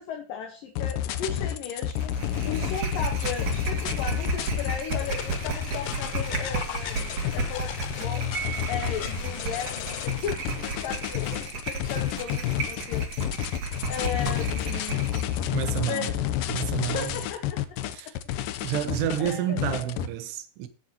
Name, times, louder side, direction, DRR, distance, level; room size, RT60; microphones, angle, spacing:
voice 1, 0.0-2.1 2.4-7.7 8.0-8.3 8.6-13.1 13.4-15.0 15.7-16.1 16.8-17.6 17.8-17.9 19.2-19.6, left 8 dB, 65° left, 2.7 m, -36 dB
sound 1, 0.8-20.1, left 11 dB, 90° left, 2.0 m, -30 dB
sound 2, 2.0-15.3, right 4 dB, 55° right, 3.4 m, -34 dB
Piano, 8.3-9.5, right 8 dB, 20° right, 3.3 m, -37 dB
voice 2, 15.5-16.2 16.5-17.2 17.9-18.2 18.6-20.7, right 11 dB, 80° right, 3.1 m, -29 dB
17.0 x 7.0 x 2.9 m
omnidirectional pair, 4.8 m